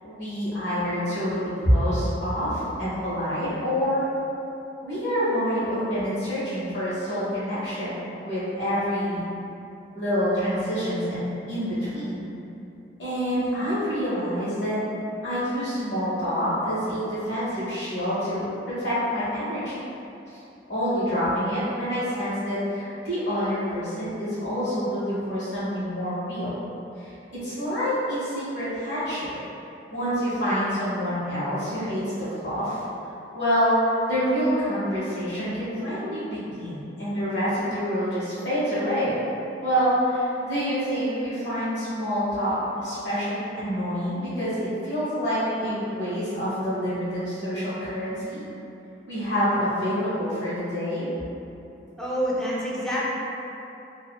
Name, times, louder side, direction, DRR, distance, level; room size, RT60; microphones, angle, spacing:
voice 1, 0.0-4.0 4.8-7.9 8.2-9.3 9.9-12.2 13.0-14.8 15.2-19.7 20.3-20.4 20.7-26.6 27.0-29.3 29.9-32.8 33.3-39.2 39.6-48.4 49.1-51.1, equal, 70° left, -12 dB, 1.2 m, -27 dB
voice 2, 52.0-53.0, equal, 5° left, -7 dB, 0.4 m, -27 dB
2.8 x 2.3 x 2.2 m, 2.9 s
head